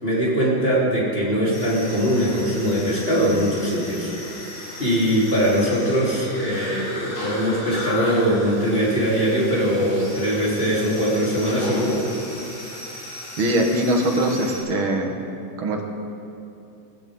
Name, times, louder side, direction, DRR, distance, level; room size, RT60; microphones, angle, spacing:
voice 1, 0.0-4.1 4.8-12.0, equal, 25° left, -7 dB, 4.2 m, -21 dB
sound 1, 1.5-14.6, left 1 dB, 85° left, 5.0 m, -36 dB
voice 2, 13.4-15.2 15.6-15.8, right 1 dB, 80° right, 2 dB, 2.4 m, -21 dB
19.5 x 16.0 x 3.9 m, 2.8 s
omnidirectional pair, 2.2 m